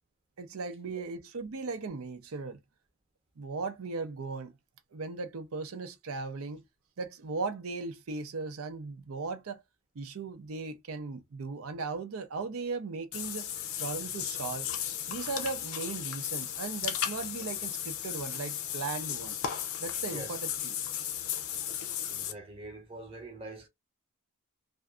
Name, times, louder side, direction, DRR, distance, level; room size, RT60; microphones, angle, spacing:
voice 1, 0.4-2.6 3.4-4.5 4.9-6.6 7.0-9.6 9.9-13.5 13.8-14.7 15.1-19.4 19.8-20.7, right 4 dB, 75° right, 0.5 m, -37 dB
Water / Bathtub (filling or washing), 13.1-22.3, left 10 dB, 70° left, 0.5 m, -35 dB
voice 2, 20.0-20.4 22.1-23.7, right 2 dB, 25° right, 0.8 m, -44 dB
2.6 x 2.4 x 2.3 m
head